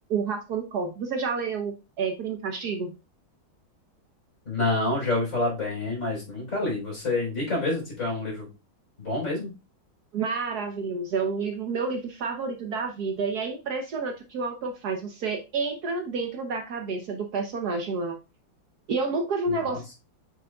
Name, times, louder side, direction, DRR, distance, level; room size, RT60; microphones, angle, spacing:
voice 1, 0.1-2.9 10.1-18.2 18.9-19.9, right 4 dB, 60° right, 4 dB, 1.3 m, -29 dB
voice 2, 4.5-8.5 9.0-9.5 19.5-19.8, left 2 dB, 45° left, -2 dB, 4.4 m, -28 dB
7.6 x 6.2 x 2.3 m, 0.28 s
omnidirectional pair, 2.0 m